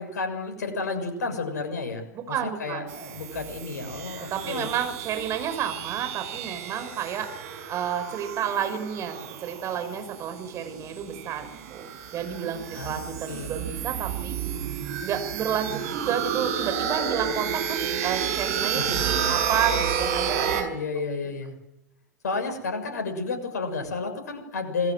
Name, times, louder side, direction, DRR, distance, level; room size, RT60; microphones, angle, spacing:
voice 1, 0.0-4.7 12.7-13.6 18.7-19.0 20.7-21.5 22.2-24.9, left 3 dB, 65° left, 6 dB, 6.8 m, -31 dB
voice 2, 2.1-2.8 4.3-20.7, right 8 dB, 30° right, 8 dB, 5.7 m, -31 dB
sound 1, 2.9-20.6, right 8 dB, 50° right, 5.6 m, -31 dB
27.5 x 20.5 x 7.8 m, 0.91 s
figure-of-eight pair, 95°, 10 cm